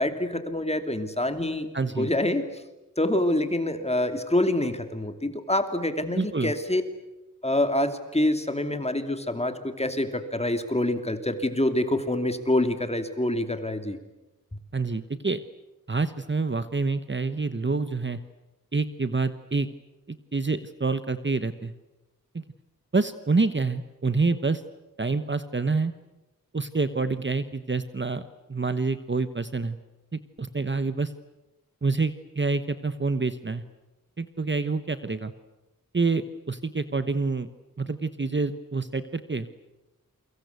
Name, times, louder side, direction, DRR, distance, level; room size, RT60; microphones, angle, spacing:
voice 1, 0.0-1.7 1.9-2.4 3.0-6.8 7.4-14.0, left 1 dB, 20° left, 8 dB, 2.7 m, -26 dB
voice 2, 1.7-2.1 6.1-6.5 14.7-15.4 15.9-18.2 18.7-19.7 20.1-21.7 22.3-22.4 22.9-24.6 25.0-25.9 26.5-29.8 30.4-31.1 31.8-33.6 34.2-35.3 35.9-37.5 37.8-39.5, right 3 dB, 35° right, 11 dB, 1.1 m, -27 dB
29.0 x 24.0 x 8.2 m, 1.0 s
wide cardioid pair, 90°, 33 cm